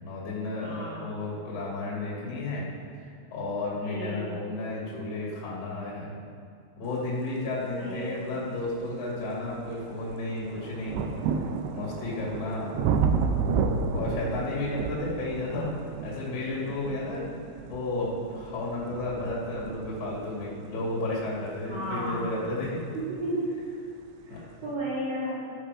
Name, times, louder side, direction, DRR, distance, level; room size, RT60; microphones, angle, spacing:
voice 1, 0.0-2.7 3.3-6.1 6.8-11.0 11.7-12.9 13.9-15.7 16.0-17.3 17.7-22.8 24.3-24.4, left 2 dB, 45° left, -6 dB, 2.6 m, -32 dB
voice 2, 0.6-1.1 3.8-4.3 7.8-8.2 21.7-22.3 22.9-23.5 24.2-25.5, right 1 dB, 55° right, -12 dB, 4.2 m, -33 dB
sound 1, 8.0-8.1 8.7-23.3 24.2-24.3, right 5 dB, 85° right, 2.5 m, -32 dB
13.5 x 5.7 x 4.8 m, 2.4 s
omnidirectional pair, 5.1 m